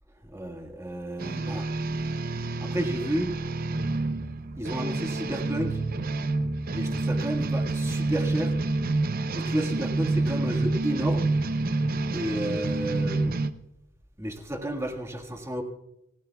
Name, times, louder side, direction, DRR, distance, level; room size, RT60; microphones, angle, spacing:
voice 1, 0.2-1.7 2.6-3.3 4.6-5.8 6.7-8.6 9.3-11.3 12.1-13.3 14.2-15.6, right 1 dB, 15° right, 3 dB, 1.7 m, -31 dB
sound 1, 1.2-13.5, right 2 dB, 45° right, 0.7 m, -28 dB
28.5 x 16.5 x 2.3 m, 0.89 s
head